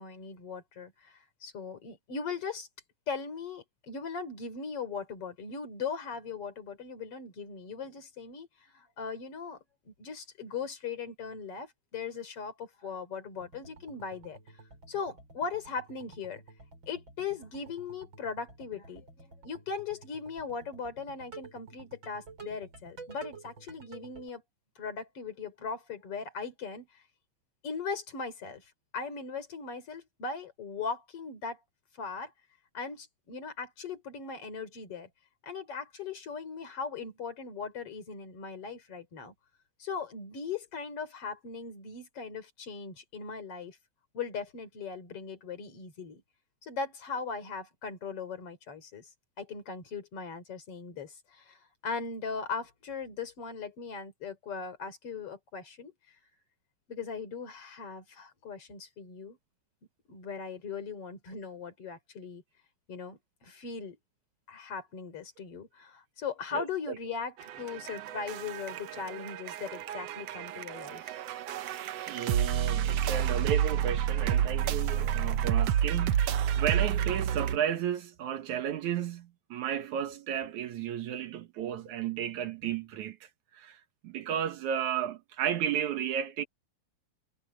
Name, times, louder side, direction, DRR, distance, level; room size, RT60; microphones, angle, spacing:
voice 1, 0.0-2.7 3.1-14.4 14.9-16.4 16.9-24.4 24.8-27.0 27.6-28.6 28.9-31.6 32.0-32.3 32.7-35.1 35.4-39.3 39.8-43.8 44.1-46.2 46.6-49.1 49.4-55.9 56.9-59.4 60.1-62.4 62.9-64.0 64.5-71.2, left 5 dB, 50° left, 4.3 m, -39 dB
sound 1, 13.3-24.3, right 4 dB, 40° right, 6.5 m, -51 dB
voice 2, 66.5-67.0 72.1-86.4, right 9 dB, 85° right, 2.7 m, -33 dB
sound 2, 67.4-77.6, right 9 dB, 65° right, 1.9 m, -30 dB
omnidirectional pair, 3.3 m